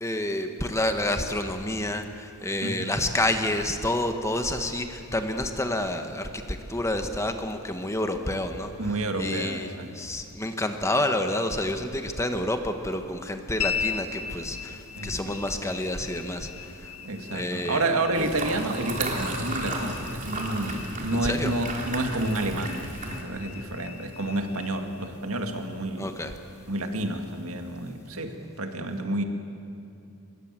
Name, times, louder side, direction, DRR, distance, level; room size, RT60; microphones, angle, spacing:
voice 1, 0.0-8.7 9.2-16.9 17.3-17.8 18.2-18.3 21.1-21.5 26.0-26.3, left 1 dB, 15° left, 6 dB, 1.4 m, -29 dB
voice 2, 2.6-2.9 8.8-10.0 14.9-15.4 17.0-26.1 26.7-29.2, right 2 dB, 70° right, 5 dB, 2.1 m, -30 dB
sound 1, 13.6-28.2, left 7 dB, 80° left, 1.6 m, -39 dB
sound 2, 18.1-23.2, right 2 dB, 35° right, 3.4 m, -34 dB
25.0 x 22.0 x 7.6 m, 2.6 s
head